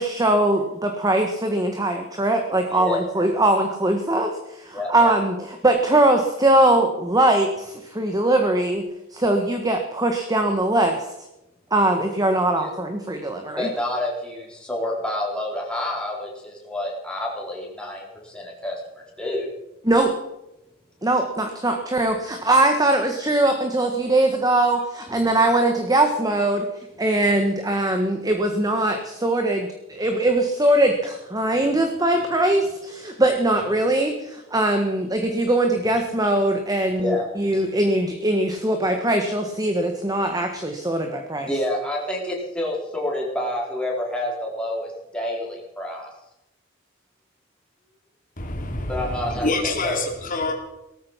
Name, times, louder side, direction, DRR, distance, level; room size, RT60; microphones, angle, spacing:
voice 1, 0.0-8.8 9.1-11.0 11.7-13.7 19.8-20.1 21.0-26.7 27.0-41.5, right 1 dB, 20° right, 5 dB, 1.5 m, -21 dB
voice 2, 2.7-3.0 4.7-4.9 12.6-12.7 13.6-19.5 25.1-25.2 31.4-31.6 33.1-33.2 37.0-37.7 41.4-46.1 48.9-50.0, left 1 dB, 5° left, -3 dB, 4.1 m, -29 dB
voice 3, 48.4-50.5, left 2 dB, 45° left, 2 dB, 3.2 m, -26 dB
18.0 x 14.0 x 5.8 m, 0.89 s
head